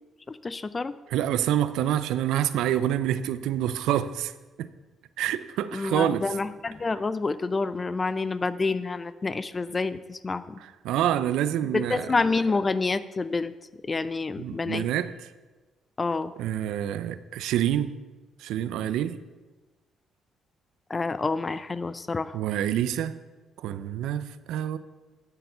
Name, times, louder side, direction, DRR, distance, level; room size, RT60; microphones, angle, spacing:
voice 1, 0.3-0.9 5.7-10.6 11.7-13.5 13.8-14.8 16.0-16.3 20.9-22.4, left 3 dB, 30° left, 0.5 m, -28 dB
voice 2, 1.1-4.3 4.6-4.7 5.2-6.3 10.6-12.1 14.4-15.3 16.4-18.0 18.4-19.2 22.3-23.2 23.6-24.8, right 11 dB, 90° right, 0.5 m, -27 dB
12.0 x 6.8 x 5.6 m
cardioid pair, 90°, 0 cm